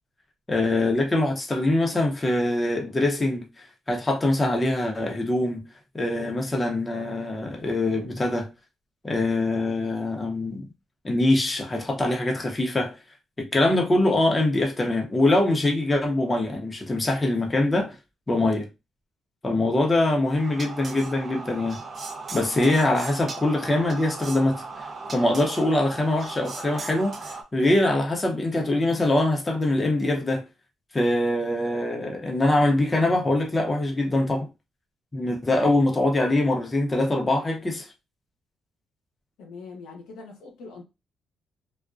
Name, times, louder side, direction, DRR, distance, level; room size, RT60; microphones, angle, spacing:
voice 1, 0.5-3.4 3.9-5.6 5.9-8.5 9.0-10.7 11.0-13.0 13.4-18.0 18.3-18.7 19.4-21.8 22.3-24.6 25.1-27.2 27.5-30.4 30.9-34.5 35.1-37.9, left 2 dB, 20° left, 0.7 m, -23 dB
sound 1, 20.3-27.4, right 3 dB, 40° right, 0.6 m, -37 dB
voice 2, 39.4-40.8, left 4 dB, 90° left, 0.7 m, -42 dB
2.4 x 2.1 x 2.5 m
cardioid pair, 90°, 0 cm